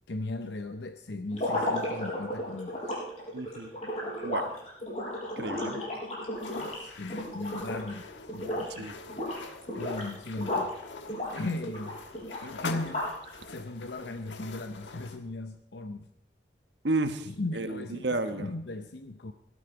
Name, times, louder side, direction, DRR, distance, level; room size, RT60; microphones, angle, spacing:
voice 1, 0.1-2.8 6.8-8.9 9.8-10.7 11.3-12.0 12.4-13.1 13.5-16.1 17.3-19.3, left 2 dB, 70° left, 8 dB, 0.7 m, -37 dB
sound 1, 1.3-8.0 8.3-8.8 9.1-10.7 11.1-13.3, left 1 dB, 40° left, 5.7 m, -34 dB
voice 2, 3.3-3.7 4.2-4.5 5.4-5.8 8.7-8.9 16.8-18.5, right 2 dB, 70° right, 8 dB, 1.3 m, -32 dB
sound 2, 6.4-15.2, left 3 dB, 85° left, 1.3 m, -44 dB
17.0 x 12.5 x 4.9 m, 0.79 s
head